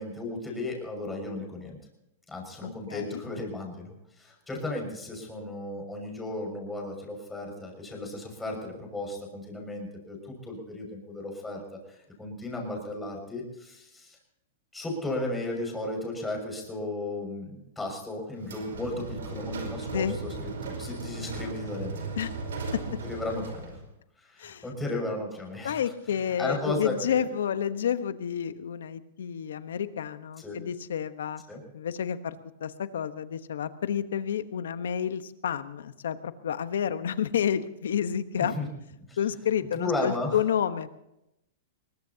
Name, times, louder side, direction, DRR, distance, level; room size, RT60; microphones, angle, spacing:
voice 1, 0.0-1.8 2.3-14.2 14.7-20.1 20.6-22.1 22.9-23.8 24.2-25.8 26.4-27.3 30.4-30.6 31.5-31.6 38.4-38.7 39.1-39.2 39.7-40.4, left 2 dB, 10° left, 1 dB, 5.9 m, -35 dB
voice 2, 2.6-3.2 19.9-20.2 22.2-22.3 22.7-22.8 24.4-24.7 25.6-31.4 31.7-38.5 39.2-40.9, left 8 dB, 85° left, 12 dB, 1.1 m, -30 dB
sound 1, 18.4-23.9, right 3 dB, 90° right, 4.7 m, -36 dB
21.5 x 19.5 x 2.8 m, 0.85 s
hypercardioid pair, 135°, 0 cm